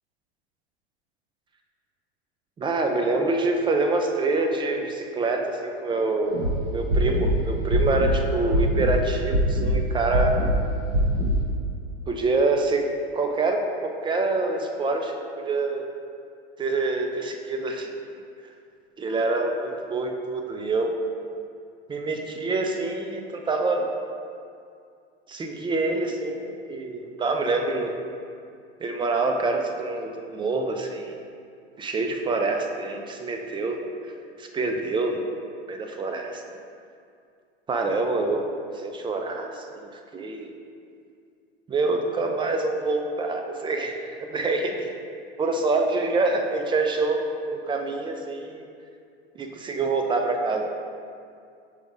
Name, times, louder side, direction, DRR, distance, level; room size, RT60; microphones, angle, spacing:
voice 1, 2.6-10.4 12.1-15.9 16.6-17.9 19.0-20.9 21.9-23.9 25.3-27.9 28.8-31.2 31.8-33.9 34.4-35.3 35.7-36.4 37.7-38.5 38.8-40.5 41.7-44.9 45.4-48.6 49.4-50.7, right 3 dB, 15° right, 3 dB, 0.4 m, -26 dB
sound 1, 6.3-6.5 6.9-7.3 7.7-8.1 8.5-8.9 9.3-9.8 10.1-10.6 10.9-11.4, equal, 60° right, 1.3 m, -22 dB
4.9 x 3.9 x 5.2 m, 2.4 s
hypercardioid pair, 90°, 32 cm